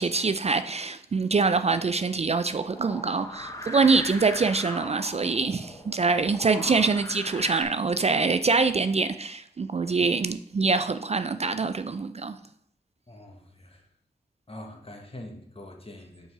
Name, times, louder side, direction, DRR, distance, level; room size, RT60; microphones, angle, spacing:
voice 1, 0.0-12.4, right 4 dB, 40° right, 0.4 m, -24 dB
sound 1, 2.6-7.6, left 1 dB, 20° left, 1.0 m, -39 dB
voice 2, 13.1-13.9 14.5-16.3, left 1 dB, 35° left, 1.4 m, -44 dB
5.3 x 4.7 x 4.8 m
cardioid pair, 45°, 17 cm